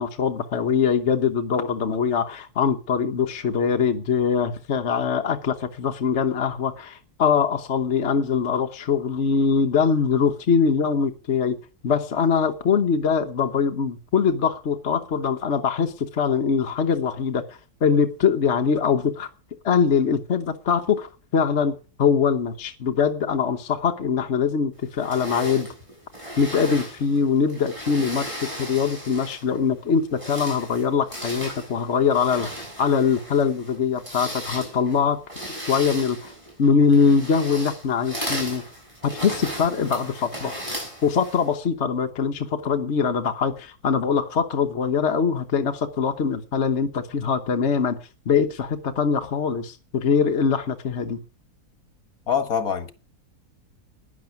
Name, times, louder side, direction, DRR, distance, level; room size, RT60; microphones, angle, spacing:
voice 1, 0.0-11.6 11.8-17.4 17.8-19.3 19.6-21.7 22.0-25.7 26.4-32.5 32.8-35.2 35.7-36.3 36.6-38.6 39.1-40.6 41.0-48.0 48.3-51.2, left 6 dB, 50° left, 1.3 m, -22 dB
sound 1, 25.0-29.6 30.0-41.6, equal, 20° right, 6.9 m, -36 dB
voice 2, 52.3-52.9, left 7 dB, 65° left, 2.1 m, -24 dB
11.5 x 10.5 x 8.4 m
omnidirectional pair, 1.7 m